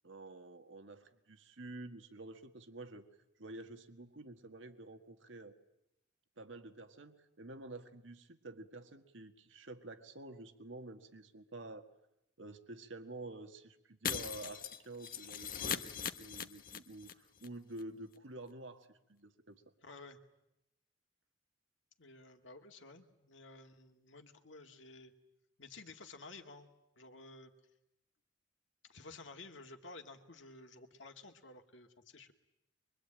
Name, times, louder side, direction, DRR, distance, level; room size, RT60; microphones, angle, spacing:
voice 1, 0.0-3.1 3.4-5.6 6.4-11.9 12.4-15.9 16.2-19.6, right 2 dB, 75° right, 7 dB, 1.7 m, -49 dB
Shatter, 14.0-17.1 17.4-17.5 17.8-17.9, left 8 dB, 50° left, 1.1 m, -40 dB
voice 2, 19.8-20.2 22.0-25.1 25.6-26.7 27.0-27.5 28.9-32.3, left 3 dB, 70° left, 5 dB, 2.1 m, -53 dB
24.5 x 23.5 x 8.9 m, 0.84 s
head